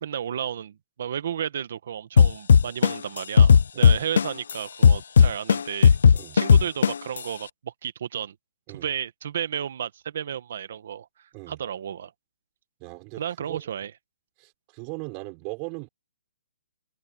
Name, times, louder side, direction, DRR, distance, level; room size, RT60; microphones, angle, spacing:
voice 1, 0.0-6.0 6.3-8.3 8.7-11.1 11.5-12.1 13.2-13.9, right 9 dB, 50° right, 1.4 m, -32 dB
sound 1, 2.2-4.5 4.8-7.2, left 6 dB, 65° left, 0.4 m, -14 dB
voice 2, 12.8-13.6 14.4-15.9, right 30 dB, 20° right, 6.2 m, -38 dB
hypercardioid pair, 175°, 0 cm